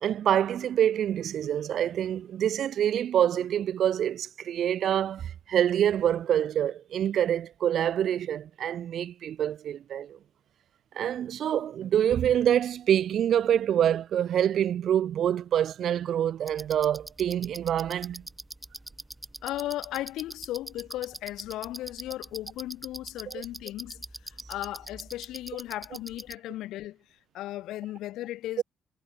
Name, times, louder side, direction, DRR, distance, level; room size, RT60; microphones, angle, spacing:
voice 1, 0.0-10.2 10.9-18.2 23.3-23.4 28.6-28.7, right 10 dB, 65° right, 1.2 m, -26 dB
sound 1, 16.5-26.3, right 1 dB, 10° right, 1.7 m, -43 dB
voice 2, 19.4-27.0 27.3-28.6, left 15 dB, 90° left, 0.8 m, -36 dB
cardioid pair, 90°, 0 cm